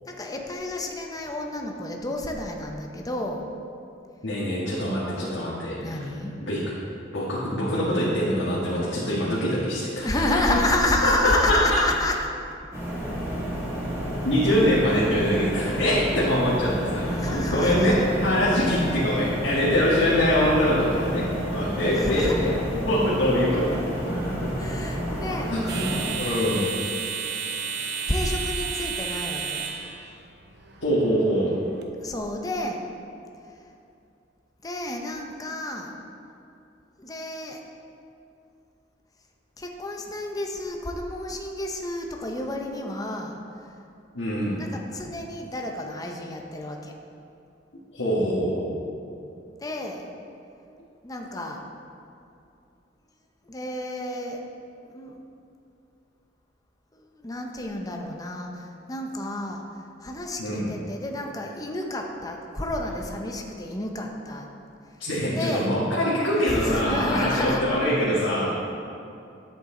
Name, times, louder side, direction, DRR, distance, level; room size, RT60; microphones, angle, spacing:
voice 1, 0.1-3.4 5.8-6.4 10.0-12.2 13.4-13.6 14.0-14.3 17.1-18.0 21.9-22.4 24.6-25.8 28.1-29.7 32.0-32.8 34.6-35.9 37.0-37.6 39.6-43.7 44.6-46.9 49.6-50.1 51.0-51.6 53.4-54.4 54.9-55.2 56.9-64.5 64.8-65.0 65.3-65.7 66.3-67.6, left 1 dB, 20° left, 2 dB, 0.7 m, -30 dB
voice 2, 4.2-6.0 6.5-6.7 7.1-10.6 11.0-11.6 14.2-22.5 22.8-23.8 24.0-24.6 25.5-25.9 26.2-26.7 30.8-31.5 44.1-44.6 47.9-48.7 60.4-60.7 65.0-68.5, equal, 85° left, -8 dB, 1.6 m, -24 dB
sound 1, 12.7-26.1, equal, 15° right, 2.2 m, -30 dB
sound 2, 21.0-31.8, right 6 dB, 65° right, 0.7 m, -35 dB
9.9 x 7.9 x 3.8 m, 2.6 s
head